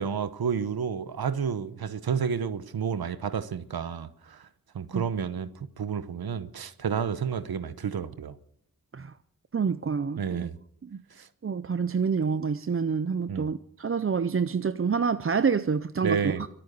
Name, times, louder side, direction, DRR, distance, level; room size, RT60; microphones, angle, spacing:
voice 1, 0.0-4.5 4.7-5.5 5.8-8.4 10.2-10.6 11.2-11.3 13.3-13.5 16.0-16.4, right 7 dB, 85° right, 1.0 m, -30 dB
voice 2, 9.5-10.5 10.8-11.0 11.4-16.5, right 5 dB, 40° right, 0.6 m, -27 dB
23.5 x 8.9 x 6.7 m
wide cardioid pair, 110°, 36 cm